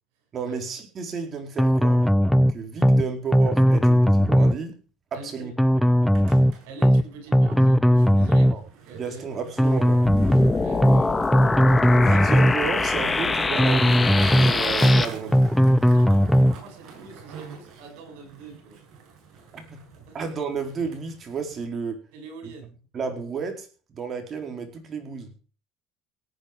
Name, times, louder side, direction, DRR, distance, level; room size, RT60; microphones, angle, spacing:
voice 1, 0.3-2.1 2.5-4.7 5.1-5.5 8.5-8.6 8.9-10.0 12.0-15.5 19.5-22.0 22.9-23.7 23.9-25.3, right 5 dB, 40° right, 5 dB, 4.6 m, -32 dB
sound 1, 1.6-2.5 2.8-3.0 3.3-4.6 5.6-6.5 6.8-7.0 7.3-8.6 9.6-10.5 10.8-11.0 11.3-12.6 13.6-14.5 14.8-15.0 15.3-16.6, equal, ahead, 0.7 m, -18 dB
voice 2, 5.1-5.5 6.6-8.6 8.8-9.2 10.6-11.5 11.9-12.2 15.8-18.8 20.1-20.2 22.1-22.7, right 5 dB, 85° right, 5 dB, 7.7 m, -43 dB
Skateboard, 5.9-21.7, right 5 dB, 60° right, 7.9 m, -42 dB
sound 2, 10.1-15.1, left 3 dB, 20° left, 1.9 m, -24 dB
18.0 x 9.6 x 5.3 m, 0.37 s
supercardioid pair, 100°, 0 cm